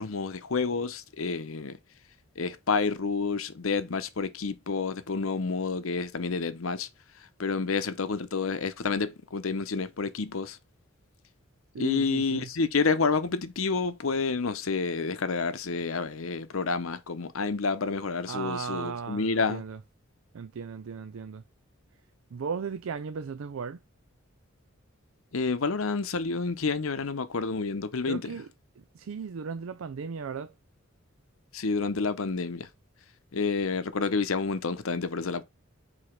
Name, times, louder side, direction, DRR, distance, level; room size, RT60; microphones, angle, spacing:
voice 1, 0.0-1.8 2.4-6.9 7.4-10.6 11.8-19.6 25.3-28.4 31.5-32.7 33.3-35.4, left 4 dB, 75° left, 0.8 m, -29 dB
voice 2, 11.7-12.5 18.3-19.8 20.3-21.4 22.3-23.8 28.0-28.5 28.9-30.5, right 6 dB, 75° right, 0.4 m, -36 dB
4.9 x 4.1 x 5.8 m
head